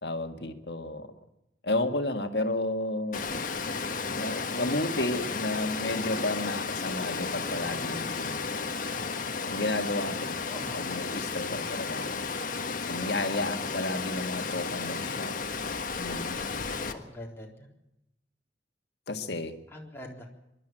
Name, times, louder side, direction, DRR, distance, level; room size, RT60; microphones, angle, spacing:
voice 1, 0.0-1.1 1.6-3.3 4.1-8.7 9.5-10.5 10.7-12.2 12.9-15.3 16.0-16.4 19.1-19.5, left 2 dB, 70° left, 7 dB, 1.9 m, -32 dB
Water, 3.1-16.9, left 4 dB, 50° left, 1.5 m, -33 dB
voice 2, 10.5-11.2 16.8-17.7 19.7-20.3, left 1 dB, 15° left, -2 dB, 3.8 m, -44 dB
25.0 x 12.0 x 9.0 m, 0.88 s
head